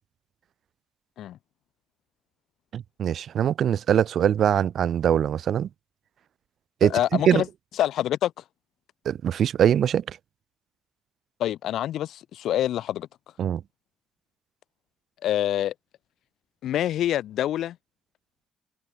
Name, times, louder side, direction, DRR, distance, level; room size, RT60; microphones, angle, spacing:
voice 1, 2.7-5.7 6.8-7.4 9.0-10.2 13.4-13.6, right 9 dB, 65° right, 3.3 m, -22 dB
voice 2, 6.8-7.5 7.8-8.3 11.4-13.1 15.2-15.7 16.6-17.8, left 12 dB, 75° left, 4.9 m, -26 dB
cardioid pair, 90°, 0 cm